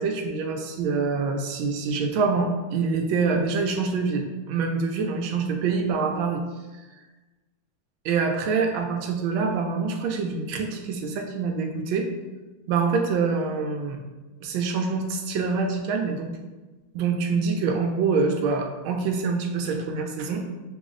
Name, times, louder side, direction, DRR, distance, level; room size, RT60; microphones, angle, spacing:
voice 1, 0.0-6.4 8.0-12.1 12.7-14.0 14.4-16.3 16.9-20.4, right 4 dB, 90° right, 3 dB, 1.4 m, -25 dB
6.0 x 2.0 x 3.7 m, 1.2 s
omnidirectional pair, 2.2 m